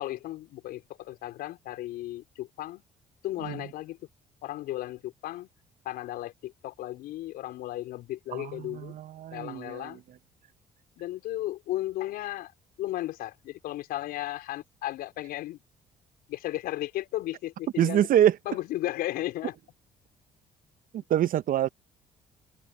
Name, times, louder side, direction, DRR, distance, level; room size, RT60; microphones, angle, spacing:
voice 1, 0.0-2.8 3.2-4.0 4.4-5.5 5.8-9.0 9.3-10.0 11.0-12.5 12.8-15.6 16.3-19.5, left 15 dB, 70° left, 4.8 m, -35 dB
voice 2, 8.4-9.9 17.8-18.3 20.9-21.7, right 11 dB, 60° right, 1.0 m, -25 dB
hypercardioid pair, 50°, 16 cm